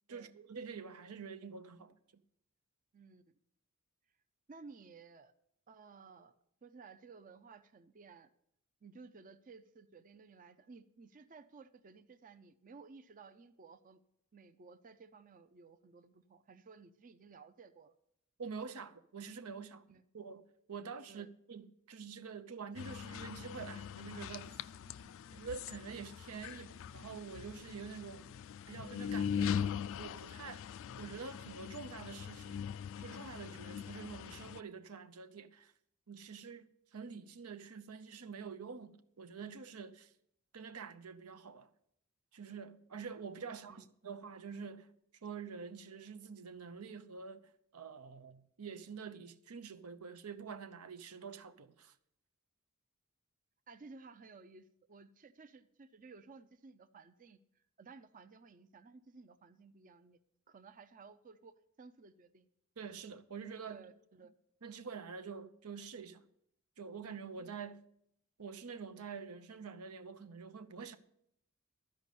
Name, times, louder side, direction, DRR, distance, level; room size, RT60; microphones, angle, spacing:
voice 1, 0.1-2.2 18.4-19.8 20.1-24.6 25.3-28.3 28.7-29.7 30.0-30.6 31.0-32.7 33.0-35.7 36.1-40.1 40.5-41.7 42.3-44.9 45.2-51.9 62.8-63.9 64.6-66.2 66.8-67.9 68.4-71.0, right 5 dB, 85° right, 0.8 m, -47 dB
voice 2, 4.5-5.3 5.7-6.3 6.6-8.3 8.8-14.0 14.3-18.0 19.9-20.0 21.1-21.3 24.9-25.1 43.4-43.9 53.7-57.4 57.8-60.2 60.5-62.5 63.7-64.3 67.4-67.6, right 4 dB, 40° right, 0.5 m, -56 dB
sound 1, 22.8-34.6, left 8 dB, 60° left, 0.3 m, -41 dB
13.0 x 5.2 x 8.3 m
head